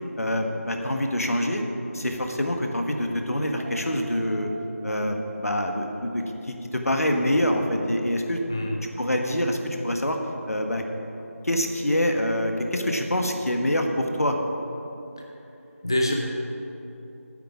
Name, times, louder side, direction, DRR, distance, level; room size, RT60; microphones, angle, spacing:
voice 1, 0.2-1.6 1.9-4.5 4.8-8.4 9.0-10.2 10.5-10.8 11.4-14.4, left 1 dB, 75° left, 3 dB, 1.5 m, -25 dB
Piano, 3.6-6.7 7.0-7.4, right 2 dB, 30° right, 2.0 m, -46 dB
voice 2, 8.4-8.8 15.8-16.1, left 1 dB, 15° left, 1 dB, 0.4 m, -25 dB
9.3 x 8.6 x 7.4 m, 3.0 s
figure-of-eight pair, 165°, 8 cm